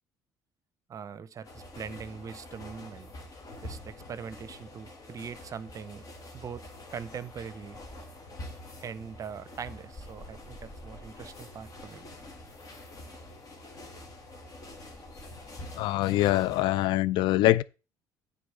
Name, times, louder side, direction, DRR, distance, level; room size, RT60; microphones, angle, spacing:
voice 1, 0.9-3.1 3.6-6.0 6.3-6.6 6.9-7.8 8.8-12.1, right 7 dB, 40° right, 0.7 m, -41 dB
sound 1, 1.4-16.9, left 1 dB, 45° left, 2.1 m, -46 dB
voice 2, 15.8-17.6, left 15 dB, 65° left, 0.4 m, -24 dB
9.5 x 3.9 x 7.0 m
hypercardioid pair, 60°, 9 cm